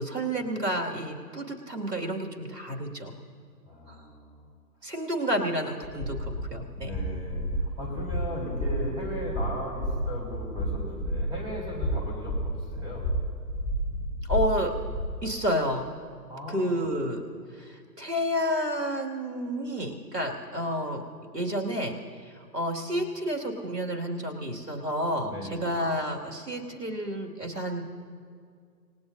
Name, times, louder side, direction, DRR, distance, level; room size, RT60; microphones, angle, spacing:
voice 1, 0.0-3.1 3.9-4.0 4.8-6.9 14.3-14.7 15.2-15.9 16.5-17.2 17.6-21.0 21.3-27.8, equal, 70° right, 1 dB, 2.5 m, -30 dB
voice 2, 3.7-4.5 4.8-4.9 6.8-13.0 16.3-16.9 25.2-25.7, equal, 10° right, -3 dB, 3.6 m, -37 dB
sound 1, 5.8-15.3, right 1 dB, 15° left, 4.7 m, -31 dB
28.0 x 18.0 x 2.7 m, 2.2 s
figure-of-eight pair, 135°, 49 cm